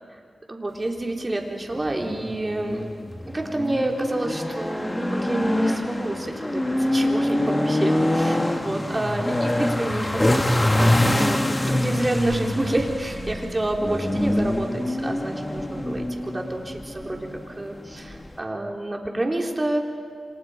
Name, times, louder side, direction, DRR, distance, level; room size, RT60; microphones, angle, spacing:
voice 1, 0.5-2.9 3.3-17.3 17.6-19.8, right 1 dB, 25° right, 1 dB, 3.9 m, -28 dB
sound 1, 1.7-18.4, left 1 dB, 20° left, 1.8 m, -25 dB
29.5 x 25.5 x 5.2 m, 2.2 s
cardioid pair, 60°, 0 cm